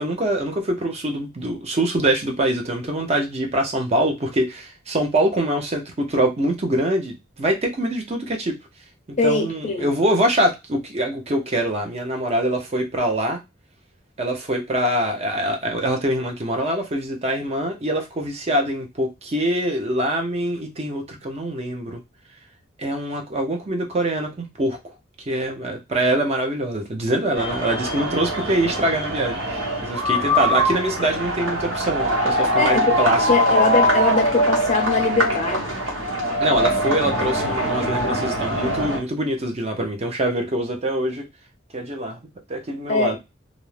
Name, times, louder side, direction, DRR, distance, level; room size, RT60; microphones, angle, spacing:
voice 1, 0.0-8.6 9.2-13.4 14.2-22.0 22.8-24.8 25.3-33.3 36.4-41.3 41.7-42.2 42.5-43.2, right 1 dB, 35° right, 0.6 m, -24 dB
voice 2, 9.2-9.9 32.6-33.0 33.3-35.8 42.9-43.2, left 3 dB, 35° left, 0.5 m, -21 dB
sound 1, 27.3-39.0, equal, 90° right, 0.9 m, -22 dB
2.5 x 2.0 x 3.1 m
head